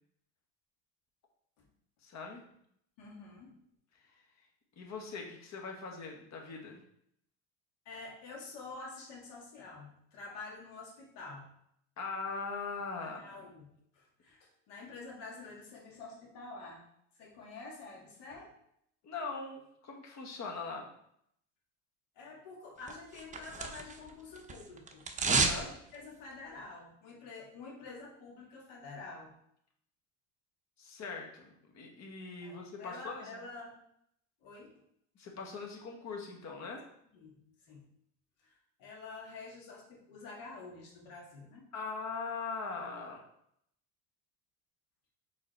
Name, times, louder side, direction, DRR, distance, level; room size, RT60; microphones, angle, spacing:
voice 1, 2.0-2.4 4.0-4.5 4.8-6.8 12.0-13.5 19.0-20.9 25.3-25.7 30.8-33.4 35.1-36.8 41.7-43.2, left 4 dB, 45° left, 2 dB, 1.6 m, -41 dB
voice 2, 3.0-3.5 7.9-11.5 13.0-16.8 17.2-18.5 22.2-25.1 25.5-29.3 32.4-33.8 34.4-34.7 37.1-37.4 37.7-37.9 38.4-41.7, left 3 dB, 80° left, -1 dB, 2.2 m, -48 dB
sound 1, 22.9-24.1 24.4-25.6 25.9-26.0, right 4 dB, 20° right, 0.7 m, -31 dB
5.3 x 4.0 x 4.3 m, 0.71 s
supercardioid pair, 110°, 39 cm